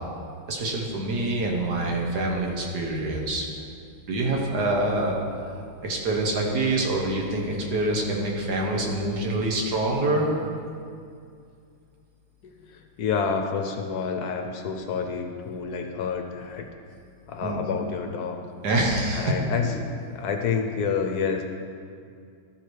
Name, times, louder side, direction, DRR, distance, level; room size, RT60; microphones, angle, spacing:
voice 1, 0.5-3.5 4.1-5.1 5.8-10.3 17.4-17.6 18.6-19.3, right 2 dB, 65° right, -1 dB, 1.7 m, -25 dB
voice 2, 12.4-16.7 17.3-18.4 19.2-21.4, left 5 dB, 70° left, 4 dB, 1.1 m, -29 dB
13.0 x 4.9 x 4.6 m, 2.3 s
omnidirectional pair, 1.9 m